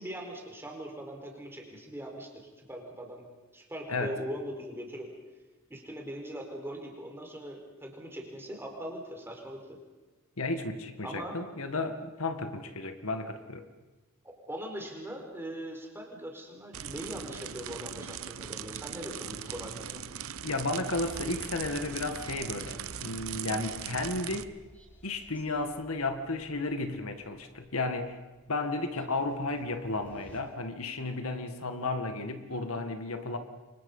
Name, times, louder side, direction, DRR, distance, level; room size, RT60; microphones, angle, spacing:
voice 1, 0.0-3.2 3.5-5.1 5.7-9.8 11.0-11.4 14.2-20.0, equal, 10° right, 1 dB, 4.5 m, -41 dB
voice 2, 10.4-13.7 20.4-24.5 25.0-28.2 28.5-33.4, left 2 dB, 75° left, 7 dB, 1.9 m, -33 dB
sound 1, 16.7-24.4, right 9 dB, 75° right, 0.9 m, -40 dB
sound 2, 21.0-30.4, equal, 10° left, 4.6 m, -53 dB
29.0 x 24.0 x 5.6 m, 1.2 s
head